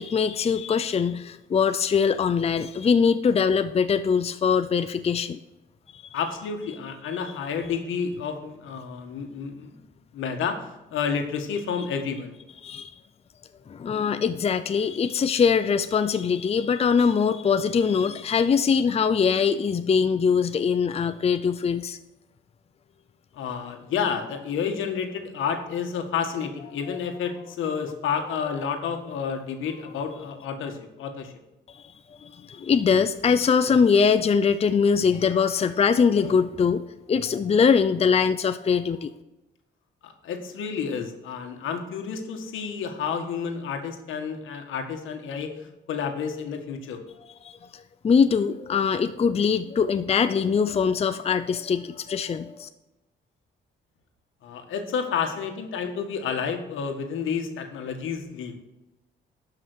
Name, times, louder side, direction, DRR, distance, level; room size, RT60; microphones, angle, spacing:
voice 1, 0.0-5.4 5.9-6.0 12.6-12.9 13.7-22.0 31.7-39.1 47.4-52.7, left 6 dB, 30° left, 11 dB, 0.6 m, -22 dB
voice 2, 6.1-9.8 10.1-12.4 23.3-31.3 40.0-47.0 54.4-58.5, left 6 dB, 80° left, 5 dB, 1.7 m, -30 dB
12.5 x 5.8 x 6.3 m, 1.0 s
cardioid pair, 90°, 20 cm